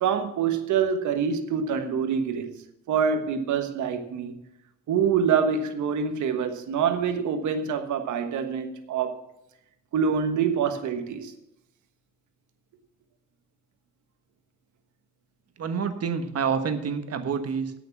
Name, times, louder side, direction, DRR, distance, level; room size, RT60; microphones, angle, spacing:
voice 1, 0.0-2.5 2.9-4.4 4.9-9.2 9.9-11.3, right 6 dB, 75° right, 1.4 m, -25 dB
voice 2, 15.6-17.7, right 6 dB, 55° right, 1.3 m, -28 dB
8.4 x 8.2 x 7.1 m
cardioid pair, 90°, 30 cm